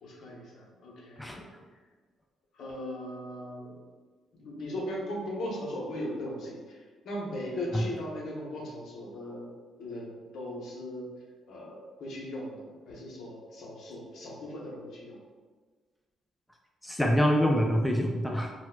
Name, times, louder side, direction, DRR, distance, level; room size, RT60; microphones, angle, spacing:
voice 1, 0.0-1.5 2.5-3.8 4.3-6.8 7.0-9.5 9.8-11.1 11.5-15.2, left 1 dB, 70° left, -2 dB, 0.8 m, -38 dB
voice 2, 16.8-18.5, equal, 5° left, 1 dB, 0.3 m, -25 dB
4.3 x 2.0 x 2.2 m, 1.4 s
cardioid pair, 90°, 0 cm